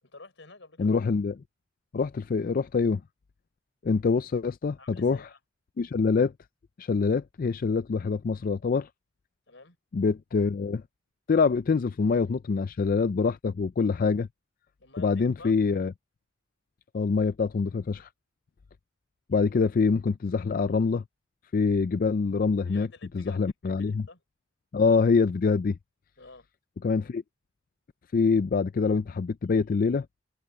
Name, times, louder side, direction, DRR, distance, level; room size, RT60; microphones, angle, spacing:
voice 1, 0.0-0.9 4.8-5.4 9.5-9.8 14.8-15.5 22.7-23.4 23.8-24.2 26.2-26.5, left 3 dB, 70° left, 5.1 m, -49 dB
voice 2, 0.8-1.3 1.9-3.0 3.8-5.3 5.8-6.3 6.8-8.9 9.9-10.8 11.3-14.3 15.0-15.9 16.9-18.1 19.3-21.0 21.5-22.9 23.1-24.0 24.7-25.8 26.8-27.2 28.1-30.1, left 4 dB, 50° left, 0.4 m, -25 dB
head